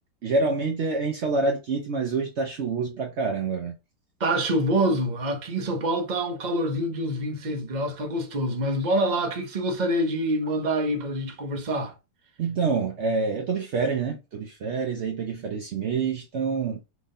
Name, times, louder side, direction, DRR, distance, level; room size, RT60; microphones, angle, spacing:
voice 1, 0.2-3.8 12.4-16.8, right 4 dB, 80° right, 0.6 m, -27 dB
voice 2, 4.2-11.9, right 1 dB, 40° right, 0.6 m, -26 dB
3.9 x 3.3 x 3.7 m
omnidirectional pair, 2.1 m